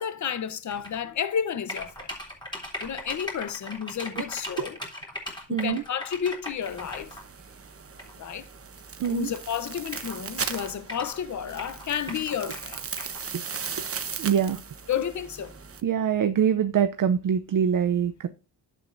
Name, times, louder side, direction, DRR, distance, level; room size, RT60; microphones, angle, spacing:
voice 1, 0.0-2.1 2.8-4.8 5.5-7.2 8.2-8.5 9.1-12.8 14.9-15.5, left 8 dB, 40° left, 0.9 m, -31 dB
sound 1, 0.7-1.0 1.7-7.2 8.0-8.1 9.0-9.1 9.3-9.4 9.9-11.2 11.6-13.2, left 1 dB, 10° left, 3.4 m, -38 dB
voice 2, 5.5-5.8 9.0-9.3 14.2-14.6 15.8-18.3, right 8 dB, 45° right, 0.7 m, -24 dB
sound 2, 6.6-15.8, right 6 dB, 30° right, 1.1 m, -38 dB
11.0 x 7.7 x 2.6 m
cardioid pair, 125°, 43 cm